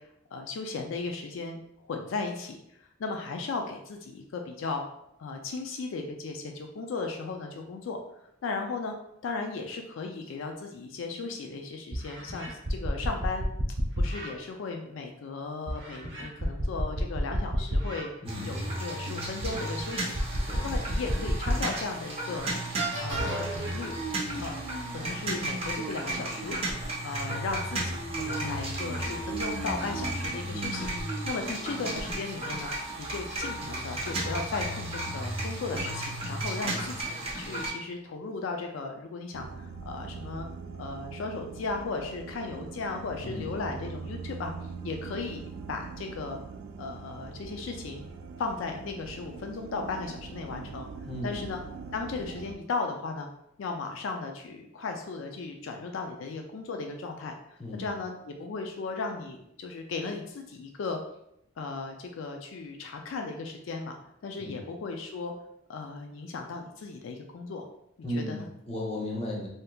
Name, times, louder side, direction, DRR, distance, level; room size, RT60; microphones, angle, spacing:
voice 1, 0.0-1.6 1.9-4.8 5.2-8.0 8.4-8.9 9.2-13.5 14.0-18.1 18.4-20.3 20.6-22.5 23.0-24.0 24.4-24.6 24.9-26.6 27.0-30.9 31.3-32.7 33.0-40.5 40.8-44.5 44.8-45.4 45.7-46.4 46.8-48.1 48.4-50.9 51.2-51.6 51.9-53.3 53.6-61.0 61.6-64.0 64.2-65.3 65.7-67.7 68.1-68.5, left 4 dB, 85° left, 3 dB, 0.4 m, -36 dB
sound 1, 11.2-11.3 11.9-14.3 15.7-18.0 18.5-18.6 19.4-21.8 22.3-22.4 22.7-23.7, equal, 70° right, 1.0 m, -30 dB
voice 2, 18.2-18.5 20.5-20.7 36.6-36.9 43.2-43.6 51.1-51.5 57.6-57.8 64.4-64.6 68.0-69.5, left 1 dB, 30° left, -2 dB, 0.7 m, -35 dB
sound 2, 18.2-37.7, right 1 dB, 30° right, 0.7 m, -34 dB
sound 3, 39.3-52.5, right 5 dB, 90° right, 0.3 m, -42 dB
3.4 x 2.7 x 2.3 m, 0.77 s
head